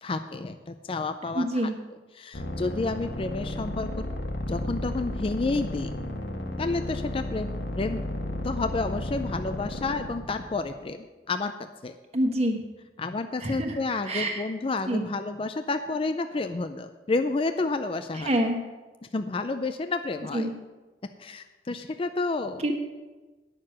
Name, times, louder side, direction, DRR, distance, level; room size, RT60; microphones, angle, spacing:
voice 1, 0.0-1.5 2.2-4.1 4.5-5.9 6.6-7.5 7.8-8.1 8.4-11.5 11.8-12.0 13.0-18.3 19.1-20.5 21.2-22.6, left 3 dB, 30° left, 8 dB, 0.4 m, -30 dB
voice 2, 1.3-1.7 12.1-12.6 13.4-13.8 14.1-14.4 14.9-15.1 18.2-18.6 20.3-20.5 22.6-22.7, right 1 dB, 35° right, 3 dB, 1.4 m, -26 dB
sound 1, 2.3-10.8, left 1 dB, 75° left, 1.2 m, -33 dB
9.5 x 6.6 x 7.4 m, 1.2 s
head